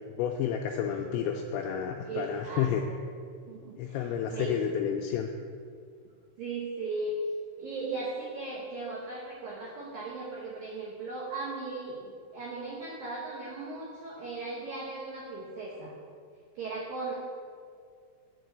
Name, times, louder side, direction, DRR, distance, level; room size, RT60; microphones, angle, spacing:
voice 1, 0.1-2.8 3.8-5.3, left 9 dB, 85° left, 2 dB, 2.6 m, -30 dB
voice 2, 2.0-3.0 3.5-4.7 6.4-7.1 7.6-15.9 16.6-17.1, right 3 dB, 80° right, -4 dB, 2.0 m, -37 dB
10.0 x 4.6 x 7.8 m, 2.2 s
omnidirectional pair, 5.7 m